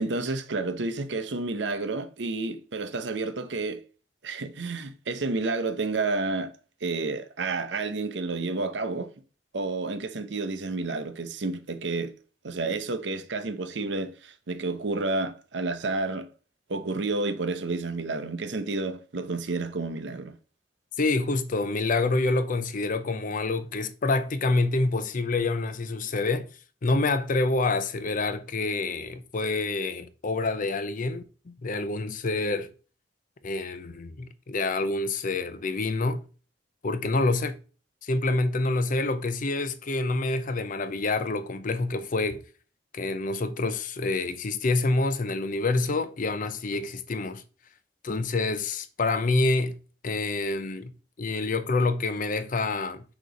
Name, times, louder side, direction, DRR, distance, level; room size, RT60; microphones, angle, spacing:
voice 1, 0.0-3.8 4.2-6.5 6.8-9.1 9.5-12.1 12.4-16.3 16.7-20.3, right 3 dB, 70° right, 0.7 m, -30 dB
voice 2, 21.0-26.5 26.8-32.7 33.4-36.2 36.8-37.6 38.0-42.4 42.9-47.4 48.0-49.8 50.0-50.9 51.2-53.0, left 3 dB, 50° left, 0.6 m, -27 dB
6.5 x 3.0 x 5.1 m
head